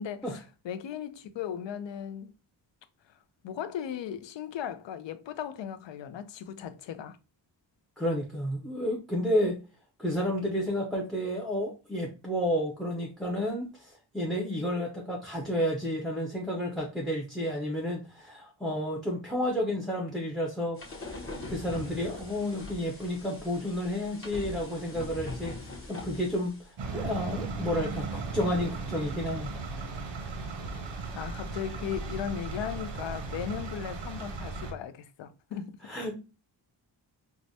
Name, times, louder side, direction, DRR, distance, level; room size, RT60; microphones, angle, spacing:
voice 1, 0.0-2.3 3.4-7.2 31.1-35.7, left 9 dB, 80° left, 0.5 m, -37 dB
voice 2, 8.0-9.6 10.0-21.2 21.5-29.5 35.8-36.2, equal, ahead, 0.5 m, -31 dB
sound 1, 20.8-26.7, left 2 dB, 30° left, 0.8 m, -42 dB
sound 2, 26.8-34.7, right 4 dB, 90° right, 0.8 m, -36 dB
4.7 x 2.1 x 2.6 m
wide cardioid pair, 155°, 43 cm